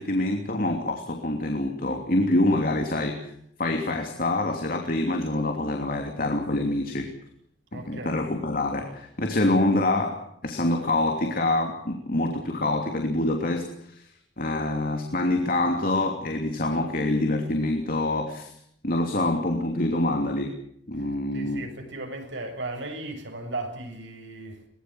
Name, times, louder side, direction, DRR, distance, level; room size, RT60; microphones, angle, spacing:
voice 1, 0.0-3.3 3.6-7.1 7.7-14.0 14.4-18.5 18.8-20.6 20.9-21.7, left 2 dB, 50° left, 3 dB, 3.0 m, -26 dB
voice 2, 7.7-8.2 21.3-24.6, right 2 dB, 85° right, 4 dB, 7.2 m, -36 dB
23.0 x 20.5 x 7.8 m, 0.71 s
head